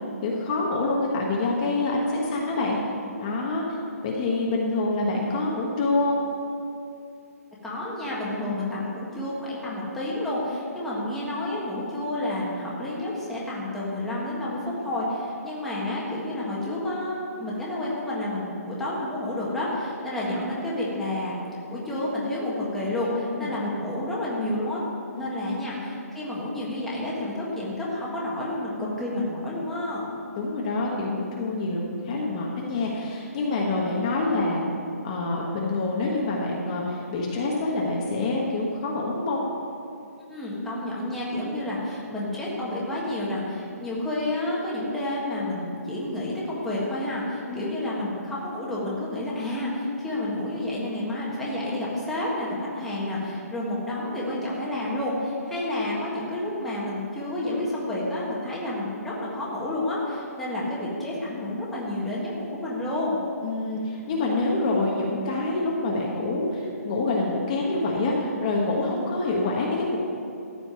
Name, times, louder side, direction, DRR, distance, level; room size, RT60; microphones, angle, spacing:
voice 1, 0.2-2.8 3.2-3.6 4.0-6.2 8.4-8.6 23.4-23.5 25.2-25.3 30.4-34.6 35.0-39.4 47.5-47.7 63.4-70.0, left 2 dB, 25° left, -2 dB, 1.3 m, -26 dB
voice 2, 7.6-21.3 21.7-24.8 25.1-30.0 40.3-63.2, left 1 dB, 5° left, -7 dB, 1.6 m, -30 dB
14.5 x 5.1 x 9.1 m, 2.6 s
hypercardioid pair, 165°, 9 cm